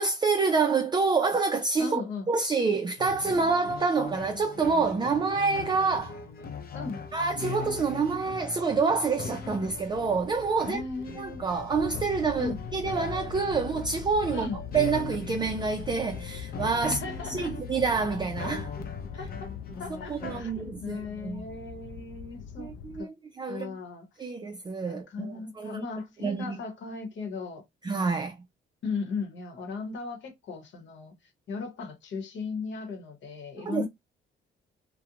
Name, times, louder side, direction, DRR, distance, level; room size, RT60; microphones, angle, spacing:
voice 1, 0.0-2.0 2.3-6.2 7.1-10.8 11.2-17.0 17.3-18.7 20.1-21.4 22.6-23.7 24.2-25.8 26.2-26.6 27.8-28.4 33.6-33.9, right 4 dB, 20° right, 0.4 m, -27 dB
voice 2, 1.8-2.3 6.7-7.0 10.6-11.4 12.4-12.6 14.3-14.6 16.8-17.6 19.1-19.5 19.8-22.7 23.0-23.1 23.5-24.1 24.8-27.6 28.8-31.1 31.5-33.9, left 4 dB, 70° left, 1.0 m, -37 dB
sound 1, 3.0-20.4, left 5 dB, 50° left, 0.7 m, -40 dB
sound 2, 9.4-23.0, left 6 dB, 85° left, 0.4 m, -41 dB
2.4 x 2.1 x 2.8 m
cardioid pair, 90°, 20 cm